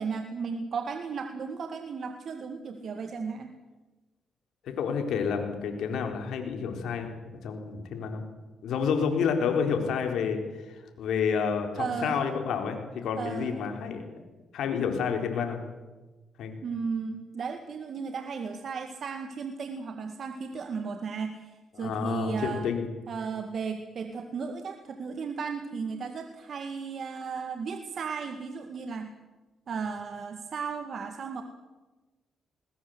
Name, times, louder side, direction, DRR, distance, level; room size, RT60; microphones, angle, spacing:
voice 1, 0.0-3.5 11.8-12.2 13.2-13.6 16.6-22.7 23.1-29.1 29.7-31.4, right 5 dB, 60° right, 6 dB, 2.0 m, -35 dB
voice 2, 4.6-7.2 7.4-8.2 8.6-10.4 10.7-14.0 14.5-15.6 16.4-16.6 21.7-22.9, left 6 dB, 75° left, 4 dB, 4.1 m, -29 dB
20.5 x 20.0 x 8.1 m, 1.2 s
cardioid pair, 70°, 0 cm